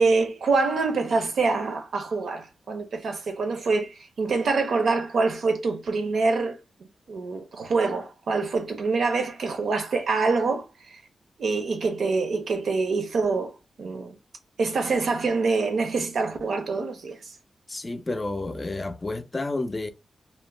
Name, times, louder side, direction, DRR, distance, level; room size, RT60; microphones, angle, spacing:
voice 1, 0.0-11.0 11.4-14.2 14.6-17.3, right 4 dB, 75° right, 0.6 m, -25 dB
voice 2, 17.7-19.9, left 2 dB, 25° left, 0.4 m, -30 dB
2.4 x 2.0 x 3.1 m
wide cardioid pair, 105°, 0 cm